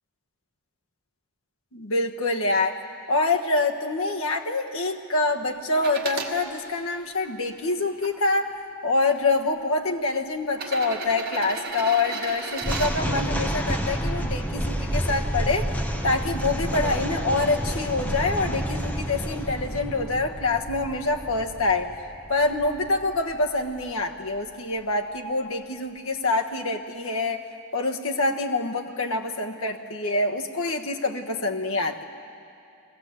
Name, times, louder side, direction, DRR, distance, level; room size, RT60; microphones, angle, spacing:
voice 1, 1.7-2.8 3.1-15.7 16.0-21.9 22.3-27.4 27.7-32.0, left 3 dB, 70° left, 3 dB, 1.3 m, -26 dB
sound 1, 5.7-6.3 7.1-8.1 9.1-9.2 10.5-12.9 14.8-14.9, right 4 dB, 45° right, 1.8 m, -34 dB
sound 2, 12.6-23.9, equal, 5° left, 1.0 m, -30 dB
21.5 x 16.5 x 8.0 m, 2.7 s
head